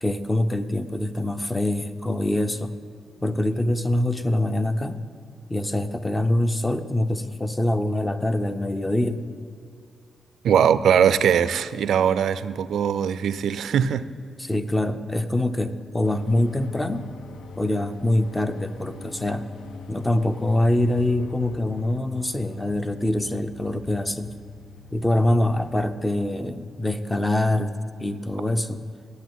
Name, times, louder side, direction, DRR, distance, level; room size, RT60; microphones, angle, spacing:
voice 1, 0.0-2.7 3.2-5.0 5.5-9.2 14.4-17.1 17.6-19.5 19.9-24.3 24.9-28.8, left 1 dB, 10° left, 0.4 m, -24 dB
voice 2, 10.4-14.1, right 8 dB, 70° right, 0.4 m, -21 dB
sound 1, 16.0-25.8, left 4 dB, 80° left, 0.5 m, -43 dB
8.5 x 8.1 x 9.1 m
wide cardioid pair, 165°, 0 cm